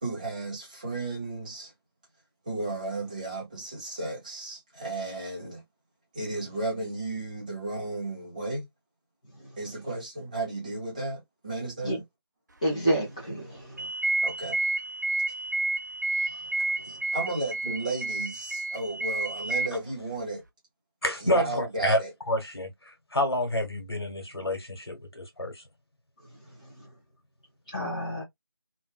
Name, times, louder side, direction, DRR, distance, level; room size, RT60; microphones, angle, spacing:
voice 1, 0.0-1.7 2.4-5.6 6.1-8.6 9.6-12.0 14.2-14.6 16.8-20.4 21.2-22.1, right 2 dB, 20° right, 0.9 m, -34 dB
voice 2, 12.6-13.9 27.7-28.2, right 1 dB, 15° left, 0.5 m, -28 dB
sound 1, 13.8-19.7, right 2 dB, 45° right, 0.5 m, -30 dB
voice 3, 21.0-22.0 22.3-25.6, left 1 dB, 70° left, 1.3 m, -28 dB
2.4 x 2.3 x 2.2 m
figure-of-eight pair, 165°, 13 cm